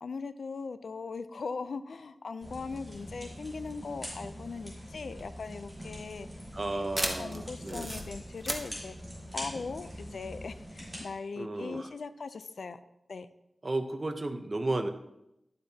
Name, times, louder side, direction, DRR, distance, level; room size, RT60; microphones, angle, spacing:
voice 1, 0.0-6.3 6.7-6.9 7.2-8.9 9.3-12.8 13.1-13.3, left 4 dB, 80° left, 12 dB, 0.4 m, -39 dB
sound 1, 2.4-11.0, equal, 5° left, 3.5 m, -44 dB
sound 2, 5.0-10.2, right 1 dB, 15° right, 1.1 m, -38 dB
voice 2, 6.5-7.9 11.4-11.9 13.6-14.9, right 2 dB, 35° right, 7 dB, 0.7 m, -33 dB
11.5 x 7.6 x 2.8 m, 0.87 s
wide cardioid pair, 105°, 0 cm